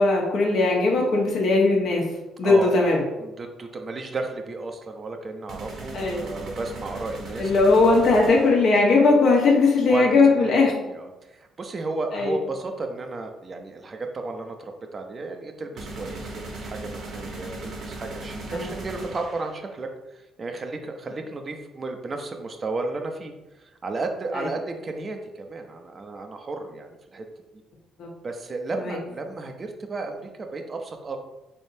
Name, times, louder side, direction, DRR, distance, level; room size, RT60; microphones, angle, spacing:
voice 1, 0.0-2.1 2.4-3.0 5.9-6.1 7.4-10.7 12.1-12.4 18.5-18.7 24.3-24.5 28.0-28.1 28.8-29.0, left 3 dB, 70° left, -1 dB, 1.1 m, -19 dB
voice 2, 2.4-2.9 3.2-7.5 9.9-27.3 28.2-31.2, right 3 dB, 40° right, 5 dB, 0.6 m, -33 dB
sound 1, 5.5-8.9 15.8-19.8, right 2 dB, 65° right, 1.0 m, -38 dB
4.1 x 3.4 x 2.7 m, 1.0 s
supercardioid pair, 75°, 0 cm